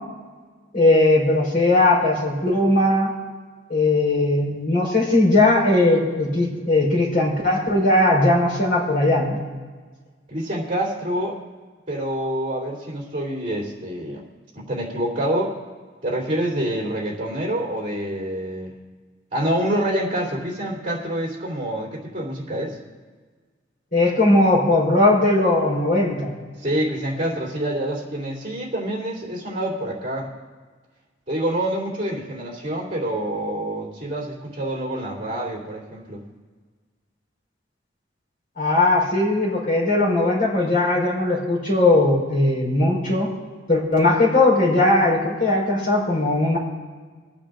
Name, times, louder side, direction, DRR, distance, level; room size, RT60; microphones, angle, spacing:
voice 1, 0.7-3.1 3.7-9.4 23.9-26.3 38.6-43.3 43.7-46.6, left 2 dB, 50° left, -3 dB, 4.6 m, -19 dB
voice 2, 10.3-11.4 11.9-14.2 14.5-15.6 16.0-18.8 19.3-22.8 26.6-30.3 31.3-36.2, right 1 dB, 30° right, -3 dB, 3.1 m, -26 dB
23.0 x 8.7 x 3.8 m, 1.5 s
head